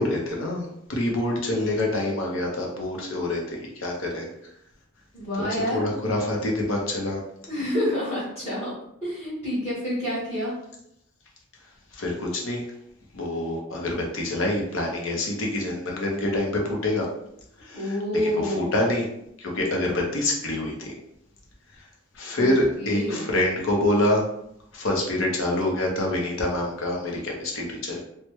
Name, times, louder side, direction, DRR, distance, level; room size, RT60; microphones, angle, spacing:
voice 1, 0.0-4.3 5.4-7.2 11.9-12.6 13.1-17.1 17.6-19.1 19.4-20.9 22.1-24.2 24.7-28.0, left 1 dB, 75° left, 0 dB, 0.8 m, -26 dB
voice 2, 5.1-5.9 7.5-8.7 9.0-10.5 17.7-18.8 22.2-22.5 22.8-23.3, left 1 dB, 30° left, -13 dB, 1.3 m, -28 dB
3.2 x 2.1 x 3.0 m, 0.75 s
head